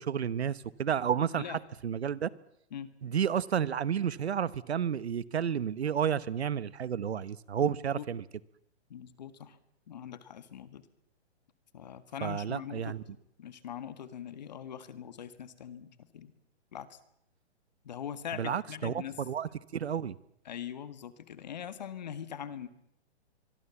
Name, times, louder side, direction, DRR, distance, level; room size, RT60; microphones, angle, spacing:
voice 1, 0.0-2.3 3.0-8.2 12.2-13.0 18.3-20.1, right 8 dB, 70° right, 19 dB, 1.2 m, -31 dB
voice 2, 7.6-8.1 8.9-9.6 9.9-10.8 11.7-16.3 16.7-17.0 17.8-19.2 20.4-22.7, left 9 dB, 40° left, 13 dB, 1.7 m, -42 dB
25.0 x 23.0 x 7.2 m, 0.74 s
hypercardioid pair, 175°, 34 cm